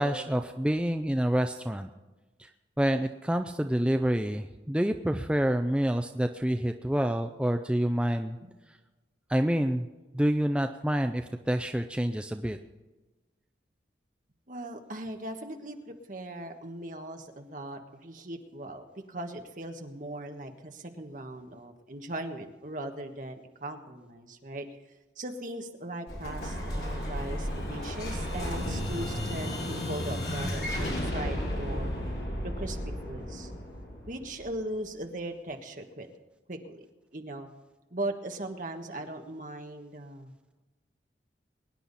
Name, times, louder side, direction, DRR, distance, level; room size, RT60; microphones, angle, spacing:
voice 1, 0.0-1.9 2.4-2.5 2.8-8.4 9.3-9.9 10.1-12.6, equal, 5° right, 6 dB, 0.4 m, -27 dB
voice 2, 14.5-24.7 25.2-31.9 32.6-33.5 34.1-36.1 36.5-36.9 37.1-37.5 37.9-40.3, right 1 dB, 45° right, 5 dB, 1.4 m, -39 dB
Explosion, 26.1-34.7, equal, 60° left, 4.7 m, -33 dB
22.5 x 10.0 x 4.1 m, 1.2 s
head